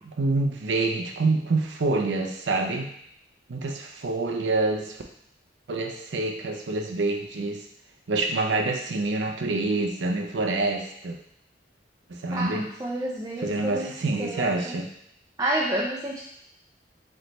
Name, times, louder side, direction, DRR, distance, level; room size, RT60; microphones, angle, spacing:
voice 1, 0.0-2.9 3.5-5.0 5.7-7.6 8.1-11.2 12.1-12.7 13.4-14.9, right 3 dB, 75° right, 3 dB, 0.5 m, -27 dB
voice 2, 12.3-13.9 14.2-14.7 15.4-16.2, right 1 dB, 20° right, -4 dB, 0.4 m, -29 dB
4.0 x 3.2 x 3.0 m, 0.70 s
head